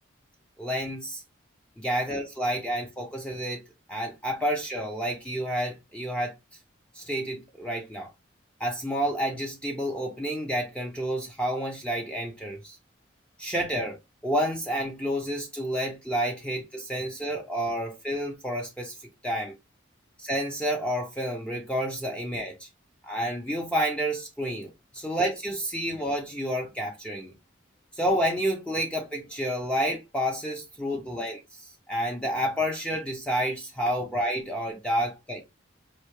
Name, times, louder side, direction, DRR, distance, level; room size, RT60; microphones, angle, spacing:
voice 1, 0.6-1.2 1.8-3.6 3.9-6.3 7.0-8.1 8.6-12.8 13.4-19.0 19.2-19.5 20.2-22.7 23.0-27.3 27.9-35.4, equal, 5° left, 0.5 m, -30 dB
4.3 x 2.7 x 3.1 m
head